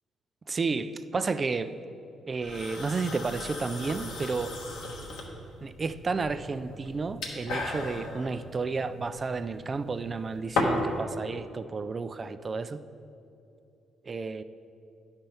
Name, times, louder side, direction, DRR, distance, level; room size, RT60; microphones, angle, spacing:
voice 1, 0.5-1.8 2.3-4.6 5.6-12.8 14.0-14.4, right 4 dB, 35° right, 12 dB, 0.3 m, -32 dB
sound 1, 2.4-11.0, left 2 dB, 85° left, 1.1 m, -36 dB
10.5 x 4.4 x 5.5 m, 2.7 s
cardioid pair, 90°, 0 cm